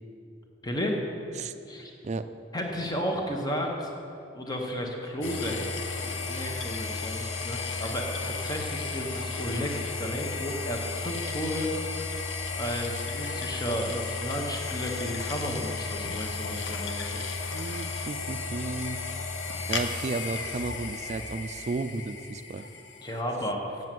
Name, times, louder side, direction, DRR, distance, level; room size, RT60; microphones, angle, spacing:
voice 1, 0.6-1.0 1.6-1.9 2.5-3.9 4.3-11.7 12.5-17.3 23.0-23.7, equal, 20° left, 1 dB, 1.1 m, -33 dB
sound 1, 5.2-23.2, left 4 dB, 90° left, 0.8 m, -34 dB
voice 2, 17.5-19.2 19.7-22.6, right 3 dB, 40° right, 11 dB, 0.4 m, -33 dB
7.8 x 7.7 x 7.6 m, 2.7 s
head